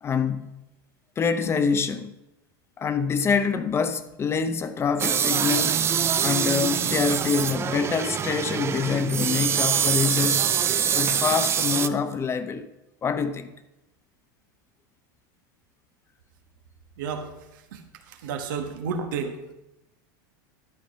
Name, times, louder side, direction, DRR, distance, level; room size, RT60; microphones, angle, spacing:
voice 1, 0.0-0.5 1.2-2.1 2.8-5.8 6.2-10.5 10.9-12.7 13.0-13.5, left 6 dB, 25° left, 0.7 m, -25 dB
sound 1, 5.0-11.9, right 8 dB, 25° right, 0.4 m, -24 dB
voice 2, 18.1-19.5, right 5 dB, 75° right, 1.3 m, -31 dB
12.0 x 5.1 x 5.4 m
supercardioid pair, 120°, 11 cm